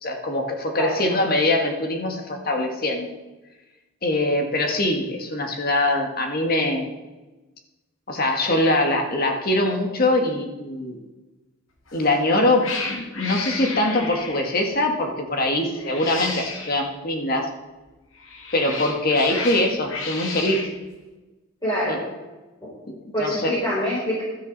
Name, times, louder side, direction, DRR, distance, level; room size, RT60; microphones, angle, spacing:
voice 1, 0.0-3.1 4.0-6.9 8.1-11.0 11.9-17.5 18.5-20.7 21.9-22.0 22.9-23.5, left 1 dB, 45° left, 3 dB, 1.8 m, -23 dB
Cat, 11.9-12.2 12.6-14.6 15.7-16.8 18.1-20.7, left 4 dB, 70° left, 2.1 m, -32 dB
voice 2, 21.6-22.0 22.6-22.7 23.1-24.2, equal, 20° left, -8 dB, 5.1 m, -25 dB
15.5 x 12.5 x 4.1 m, 1.1 s
head